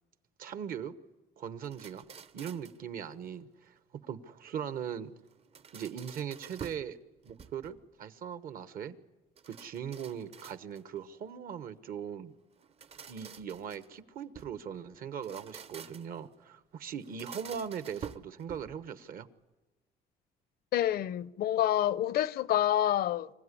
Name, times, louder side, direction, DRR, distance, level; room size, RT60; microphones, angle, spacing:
voice 1, 0.4-0.9 1.4-2.1 2.3-3.7 4.0-5.1 5.7-7.0 7.2-8.9 9.5-12.3 13.1-19.3, right 8 dB, 60° right, 1.2 m, -40 dB
sound 1, 1.6-2.9 5.3-6.9 7.3-7.9 9.4-11.0 12.6-14.6 15.1-16.2 17.0-18.9, right 7 dB, 35° right, 0.8 m, -48 dB
voice 2, 20.7-23.3, left 12 dB, 65° left, 0.7 m, -28 dB
26.0 x 15.5 x 9.9 m
cardioid pair, 110°, 17 cm